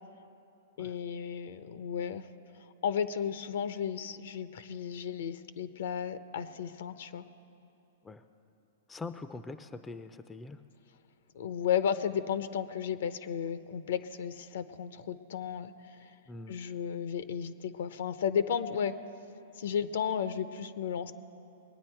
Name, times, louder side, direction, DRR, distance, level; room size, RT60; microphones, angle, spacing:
voice 1, 0.8-2.3 2.8-7.2 11.3-15.7 16.0-16.1 16.5-18.9 19.6-21.1, left 8 dB, 70° left, 12 dB, 0.6 m, -33 dB
voice 2, 8.9-10.6 16.3-16.6, left 3 dB, 10° left, 11 dB, 0.4 m, -43 dB
21.5 x 9.4 x 4.5 m, 3.0 s
hypercardioid pair, 130°, 0 cm